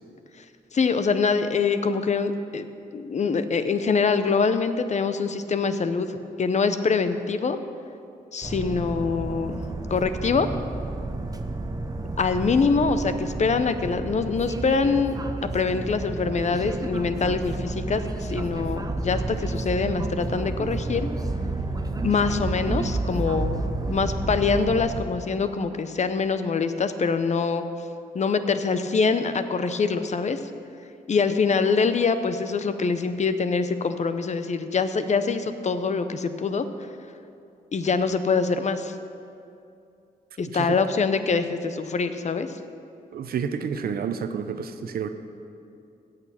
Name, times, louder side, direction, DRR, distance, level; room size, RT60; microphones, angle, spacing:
voice 1, 0.7-2.6 2.9-6.1 6.4-7.6 8.3-9.6 9.9-10.5 12.2-15.1 15.5-21.1 22.0-23.6 23.9-27.6 28.1-30.4 31.1-36.6 37.7-38.9 40.4-42.5, left 5 dB, 45° left, 10 dB, 0.7 m, -24 dB
sound 1, 8.4-25.0, right 2 dB, 25° right, 0.8 m, -30 dB
voice 2, 43.1-45.1, right 7 dB, 75° right, 9 dB, 0.7 m, -29 dB
16.5 x 6.7 x 5.8 m, 2.5 s
cardioid pair, 75°, 16 cm